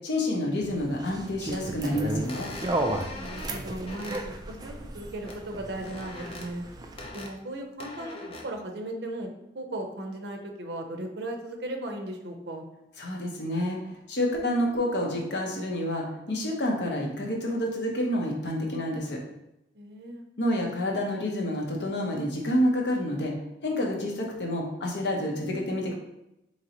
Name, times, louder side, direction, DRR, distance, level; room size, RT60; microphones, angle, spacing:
voice 1, 0.0-2.5 13.0-19.2 20.4-23.3 23.6-25.9, left 1 dB, 70° left, 0 dB, 0.8 m, -28 dB
sound 1, 0.6-7.1, right 1 dB, 20° right, 0.3 m, -35 dB
sound 2, 1.5-1.6 2.3-4.2 5.2-5.4 5.7-6.5 7.0-7.3 7.8-8.4, left 2 dB, 35° left, 0.5 m, -41 dB
voice 2, 3.1-6.7 7.1-9.3 9.5-12.7 19.7-20.3, right 1 dB, 70° right, 3 dB, 0.6 m, -37 dB
3.9 x 3.0 x 2.9 m, 0.88 s
head